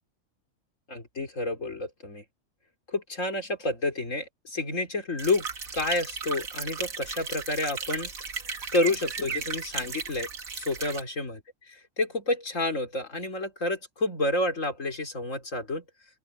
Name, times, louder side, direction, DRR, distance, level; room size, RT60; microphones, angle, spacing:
voice 1, 0.9-2.2 2.9-5.5 5.7-8.1 8.7-10.3 10.5-11.4 11.7-15.8, left 2 dB, 65° left, 4.1 m, -29 dB
sound 1, 5.2-11.0, right 5 dB, 80° right, 2.3 m, -35 dB
open air
omnidirectional pair, 1.4 m